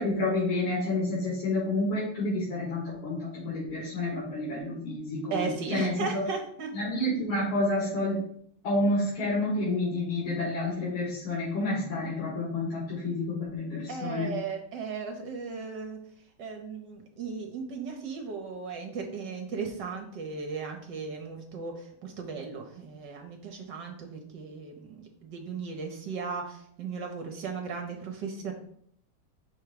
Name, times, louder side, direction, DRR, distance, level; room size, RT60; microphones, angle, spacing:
voice 1, 0.0-6.2 6.7-8.2 8.6-14.3, left 2 dB, 80° left, -7 dB, 2.7 m, -29 dB
voice 2, 5.3-6.7 13.9-16.0 16.4-28.5, right 5 dB, 65° right, 3 dB, 1.4 m, -36 dB
6.0 x 3.5 x 5.0 m, 0.66 s
omnidirectional pair, 2.3 m